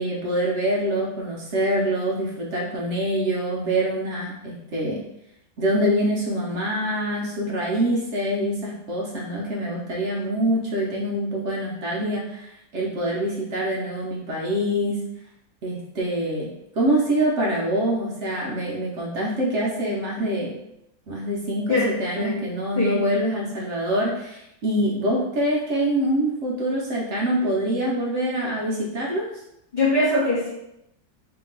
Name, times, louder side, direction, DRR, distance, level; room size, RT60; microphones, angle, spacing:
voice 1, 0.0-5.0 5.6-15.0 15.6-16.5 16.7-20.5 21.1-29.2, right 1 dB, 60° right, -3 dB, 0.8 m, -25 dB
voice 2, 21.7-22.3 22.8-23.0 29.7-30.5, left 2 dB, 35° left, -8 dB, 0.8 m, -22 dB
2.9 x 2.8 x 3.8 m, 0.81 s
omnidirectional pair, 1.9 m